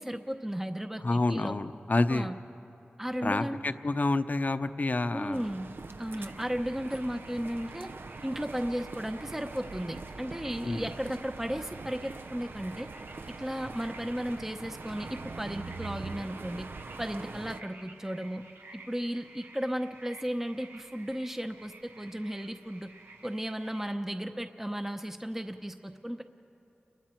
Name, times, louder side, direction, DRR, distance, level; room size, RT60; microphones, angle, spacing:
voice 1, 0.0-1.5 2.1-2.3 3.0-3.6 5.1-5.7 6.0-7.9 8.2-12.9 13.4-16.7 17.0-18.4 18.7-22.9 23.2-26.2, equal, 10° right, 6 dB, 0.8 m, -35 dB
voice 2, 1.0-2.3 3.2-5.5 10.6-10.9, left 2 dB, 50° left, 10 dB, 0.8 m, -28 dB
sound 1, 5.3-17.6, right 3 dB, 70° right, 0.6 m, -43 dB
sound 2, 6.1-23.9, right 3 dB, 90° right, 1.3 m, -53 dB
29.5 x 22.0 x 4.5 m, 2.8 s
wide cardioid pair, 60°, 4 cm